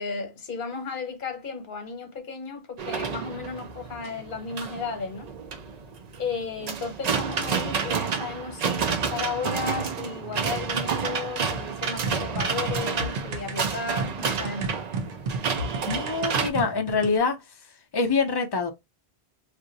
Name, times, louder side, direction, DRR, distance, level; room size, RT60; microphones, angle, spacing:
voice 1, 0.0-5.3 6.1-14.7, left 4 dB, 55° left, 1.1 m, -34 dB
sound 1, 2.8-16.5, right 6 dB, 50° right, 0.5 m, -30 dB
sound 2, 12.0-17.2, right 3 dB, 65° right, 0.9 m, -33 dB
voice 2, 15.9-17.4 17.9-18.7, left 4 dB, 30° left, 0.5 m, -25 dB
2.5 x 2.5 x 3.9 m
omnidirectional pair, 1.0 m